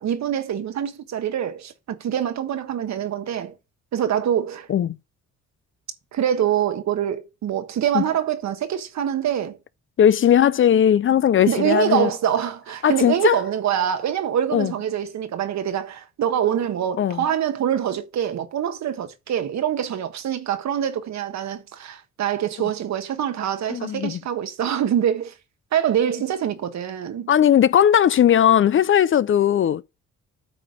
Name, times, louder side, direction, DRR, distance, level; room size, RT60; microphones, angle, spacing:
voice 1, 0.0-3.5 3.9-4.7 6.1-9.6 11.4-25.3 25.7-27.3, right 9 dB, 65° right, 1.3 m, -25 dB
voice 2, 10.0-12.1 12.8-13.4 14.5-14.7 17.0-17.2 23.7-24.2 27.3-29.8, left 9 dB, 45° left, 0.5 m, -18 dB
8.6 x 3.4 x 6.3 m
cardioid pair, 90°, 30 cm